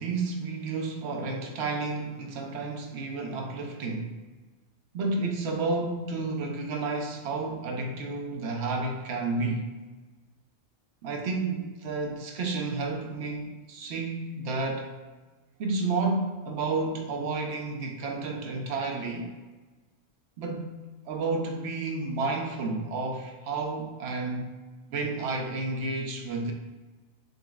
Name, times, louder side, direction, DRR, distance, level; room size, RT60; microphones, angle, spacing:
voice 1, 0.0-4.2 4.9-9.7 11.0-14.9 15.6-19.3 20.4-20.7 21.1-24.5 24.9-26.5, right 3 dB, 85° right, 2 dB, 0.9 m, -31 dB
5.3 x 3.0 x 2.3 m, 1.2 s
omnidirectional pair, 1.1 m